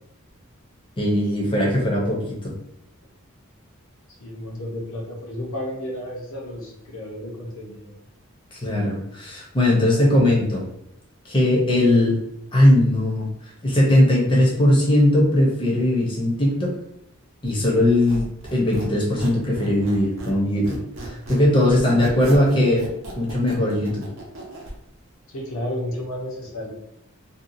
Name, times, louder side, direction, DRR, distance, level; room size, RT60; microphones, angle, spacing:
voice 1, 1.0-2.5 8.5-10.6 11.3-12.2 12.5-13.3 13.6-16.7 17.4-20.8 21.0-22.9 23.2-24.0, left 1 dB, 20° left, -3 dB, 0.7 m, -19 dB
voice 2, 4.2-8.0 21.8-22.7 25.3-26.7, left 1 dB, 65° left, -2 dB, 0.7 m, -32 dB
Squeak, 17.9-20.4 20.6-24.7, right 1 dB, 55° right, 0.6 m, -36 dB
2.7 x 2.3 x 2.6 m, 0.81 s
head